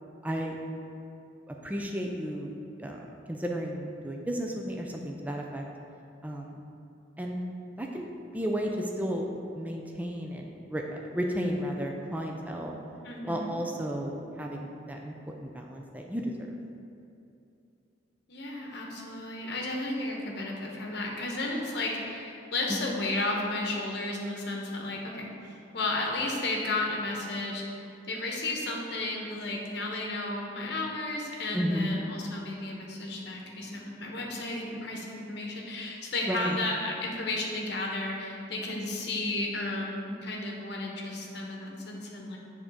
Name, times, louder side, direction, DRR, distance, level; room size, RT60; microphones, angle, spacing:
voice 1, 0.2-0.6 1.5-2.5 2.8-5.6 6.2-6.5 7.2-7.4 7.8-8.0 8.3-9.3 9.5-12.8 13.2-15.1 15.4-16.5 22.7-22.9 31.5-32.0 36.3-36.6, equal, 10° right, 1 dB, 0.4 m, -33 dB
voice 2, 13.0-13.6 18.3-42.4, left 2 dB, 55° left, -1 dB, 1.0 m, -33 dB
7.1 x 3.7 x 5.3 m, 2.7 s
head